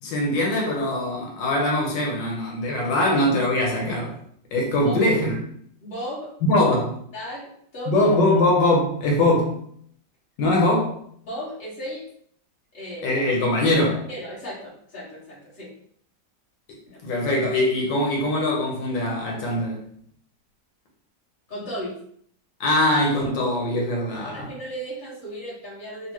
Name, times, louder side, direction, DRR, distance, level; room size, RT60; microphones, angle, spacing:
voice 1, 0.0-4.2 4.5-5.4 6.5-7.0 7.9-9.6 10.4-11.0 13.0-14.1 17.0-19.8 22.6-24.5, left 1 dB, 85° left, -1 dB, 1.5 m, -22 dB
voice 2, 5.8-6.3 7.1-7.4 7.7-8.1 11.2-12.0 12.7-13.2 14.1-15.7 16.9-17.0 21.5-21.9 24.2-26.1, equal, 30° left, -9 dB, 1.6 m, -35 dB
3.6 x 2.4 x 3.0 m, 0.64 s
omnidirectional pair, 1.9 m